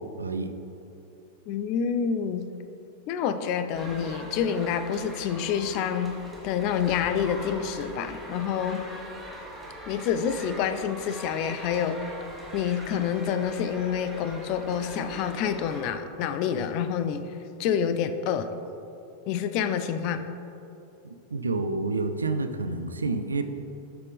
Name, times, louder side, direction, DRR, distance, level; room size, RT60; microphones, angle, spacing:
voice 1, 0.2-0.5 21.0-23.4, right 3 dB, 75° right, 8 dB, 0.4 m, -29 dB
voice 2, 1.5-2.5 3.1-6.1 6.4-8.9 9.9-12.1 12.5-17.3 17.6-18.5 19.3-20.3, left 8 dB, 45° left, 10 dB, 0.4 m, -28 dB
sound 1, 3.7-15.8, right 1 dB, ahead, 1.3 m, -42 dB
11.0 x 4.1 x 3.4 m, 2.8 s
figure-of-eight pair, 90°, 0 cm